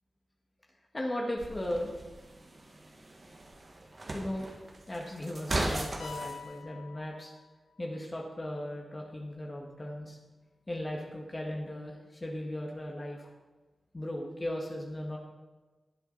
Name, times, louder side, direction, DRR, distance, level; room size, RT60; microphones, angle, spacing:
voice 1, 0.9-1.9 4.1-4.5 4.9-7.3 7.8-10.2 10.7-13.3 13.9-15.2, left 1 dB, 30° left, -1 dB, 1.8 m, -37 dB
sound 1, 1.4-6.4, right 2 dB, 40° right, 1.7 m, -38 dB
sound 2, 6.0-7.9, left 6 dB, 90° left, 1.1 m, -46 dB
17.0 x 8.2 x 4.1 m, 1.2 s
wide cardioid pair, 85°, 0 cm